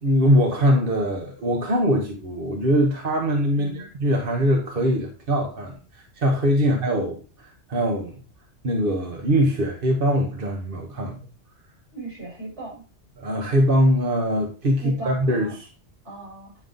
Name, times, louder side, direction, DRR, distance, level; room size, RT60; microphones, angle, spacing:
voice 1, 0.0-8.2 8.6-11.2 13.2-15.7, equal, 50° right, 1.3 m, -22 dB
voice 2, 3.6-3.9 6.6-6.7 11.9-12.8 14.8-15.5 16.0-16.5, right 2 dB, 70° right, 5.5 m, -37 dB
9.7 x 5.5 x 3.8 m
omnidirectional pair, 1.2 m